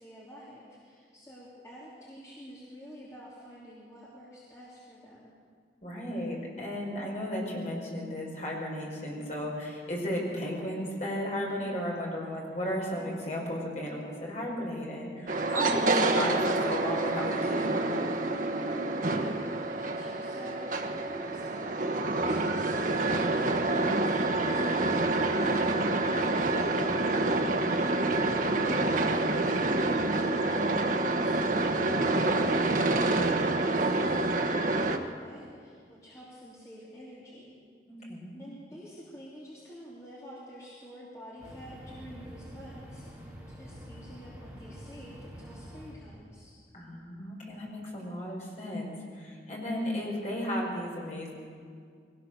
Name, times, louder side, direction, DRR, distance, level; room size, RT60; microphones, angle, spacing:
voice 1, 0.0-5.3 19.0-27.2 28.0-31.4 31.7-37.6 38.4-46.5, equal, 15° left, -7 dB, 3.1 m, -48 dB
voice 2, 5.8-17.9 27.5-27.9 37.9-38.4 46.7-51.3, left 1 dB, 40° left, -2 dB, 5.5 m, -34 dB
sound 1, 15.3-35.0, right 2 dB, 45° right, 1.1 m, -27 dB
sound 2, 41.4-45.9, equal, 10° right, 4.1 m, -46 dB
22.5 x 17.5 x 6.9 m, 2.1 s
head